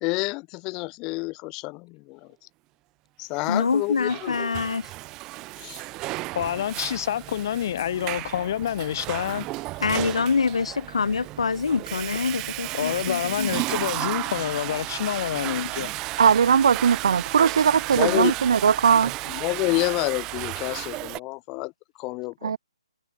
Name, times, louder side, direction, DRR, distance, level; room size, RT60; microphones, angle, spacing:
voice 1, 0.0-2.3 3.2-4.3 5.6-5.8 17.9-18.3 19.3-21.7 22.0-22.6, left 26 dB, 15° left, 1.0 m, -28 dB
voice 2, 3.5-4.9 9.8-13.6, left 5 dB, 75° left, 4.8 m, -25 dB
Water / Toilet flush, 3.7-21.2, right 20 dB, 15° right, 1.0 m, -33 dB
voice 3, 6.3-9.5 12.7-15.9, left 10 dB, 35° left, 2.5 m, -28 dB
voice 4, 16.2-19.1 22.4-22.6, right 7 dB, 50° right, 0.9 m, -19 dB
hypercardioid pair, 170°, 3 cm